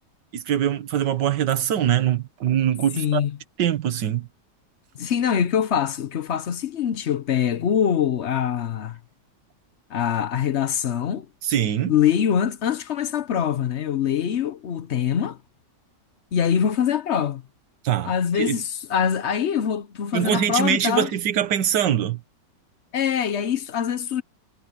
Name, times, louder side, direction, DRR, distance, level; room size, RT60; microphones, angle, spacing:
voice 1, 0.3-3.2 3.6-4.3 11.4-11.9 17.8-18.6 20.1-22.2, right 10 dB, 85° right, 1.8 m, -23 dB
voice 2, 2.9-3.4 5.0-9.0 9.9-11.3 11.9-15.4 16.3-17.4 18.0-21.1 22.9-24.2, left 8 dB, 55° left, 0.9 m, -24 dB
omnidirectional pair, 1.8 m